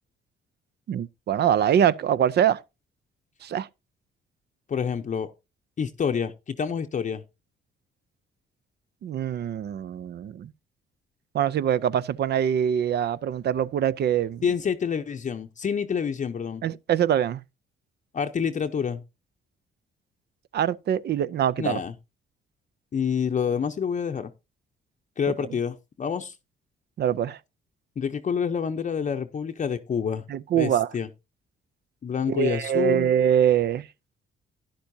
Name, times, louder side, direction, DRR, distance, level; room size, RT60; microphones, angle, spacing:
voice 1, 0.9-2.6 3.4-3.7 9.0-10.5 11.3-14.4 16.6-17.4 20.5-21.8 27.0-27.4 30.3-30.9 32.3-33.8, right 9 dB, 55° right, 0.5 m, -24 dB
voice 2, 4.7-5.3 5.8-7.2 14.4-16.6 18.1-19.0 21.6-21.9 22.9-24.3 25.2-26.4 28.0-30.2 30.5-31.1 32.0-33.1, left 7 dB, 40° left, 0.7 m, -27 dB
11.5 x 10.5 x 2.7 m
cardioid pair, 90°, 20 cm